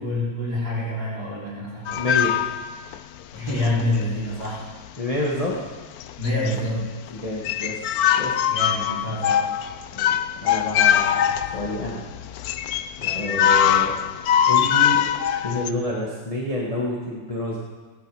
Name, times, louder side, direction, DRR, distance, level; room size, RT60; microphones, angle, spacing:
voice 1, 0.0-2.1 3.3-4.6 6.2-6.9 8.5-9.4 13.0-13.5, left 1 dB, 60° right, -7 dB, 4.3 m, -27 dB
sound 1, 1.9-3.0 3.5-4.0 4.4-4.5 5.5-5.7 6.0-6.8 7.1-7.2 7.4-15.7, left 10 dB, 70° left, 0.9 m, -22 dB
voice 2, 1.9-2.4 5.0-5.6 7.1-7.7 8.2-8.3 9.9-10.1 10.4-11.3 11.5-12.0 13.1-13.9 14.4-15.0 15.4-17.6, left 1 dB, 20° left, -4 dB, 1.7 m, -28 dB
16.5 x 11.0 x 5.0 m, 1.4 s
omnidirectional pair, 1.9 m